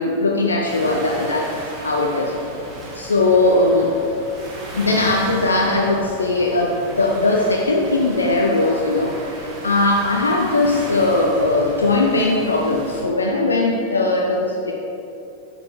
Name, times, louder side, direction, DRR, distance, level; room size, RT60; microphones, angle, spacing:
voice 1, 0.0-1.5 1.8-2.3 2.9-3.9 4.7-14.7, left 2 dB, 75° left, -1 dB, 0.8 m, -19 dB
sound 1, 0.6-13.0, right 1 dB, 15° right, 2.1 m, -35 dB
10.5 x 7.0 x 3.7 m, 2.8 s
figure-of-eight pair, 90°, 0 cm